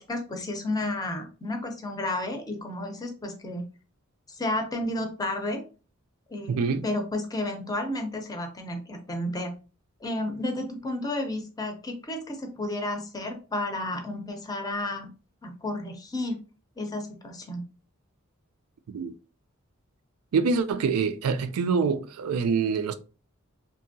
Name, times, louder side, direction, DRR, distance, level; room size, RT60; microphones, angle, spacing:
voice 1, 0.0-3.7 4.4-5.6 6.3-6.6 6.8-9.5 10.0-15.1 15.4-16.4 16.8-17.6, left 1 dB, 15° left, 0.5 m, -32 dB
voice 2, 6.5-6.9 18.9-19.1 20.3-22.9, right 5 dB, 90° right, 0.4 m, -25 dB
2.7 x 2.6 x 2.6 m
head